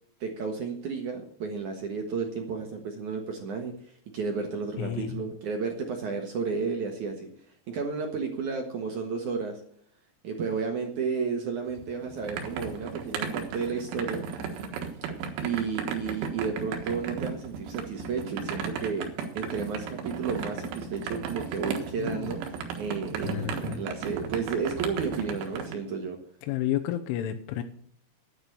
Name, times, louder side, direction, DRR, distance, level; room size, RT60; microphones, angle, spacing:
voice 1, 0.2-3.7 4.1-7.3 7.7-9.6 10.2-14.2 15.4-22.4 22.8-26.2, right 5 dB, 65° right, 3 dB, 2.1 m, -32 dB
voice 2, 4.8-5.2 21.9-22.3 23.2-23.8 26.4-27.6, left 11 dB, 85° left, 6 dB, 3.3 m, -31 dB
sound 1, 11.7-25.7, right 6 dB, 85° right, 3.8 m, -35 dB
10.0 x 9.8 x 6.9 m, 0.62 s
omnidirectional pair, 5.4 m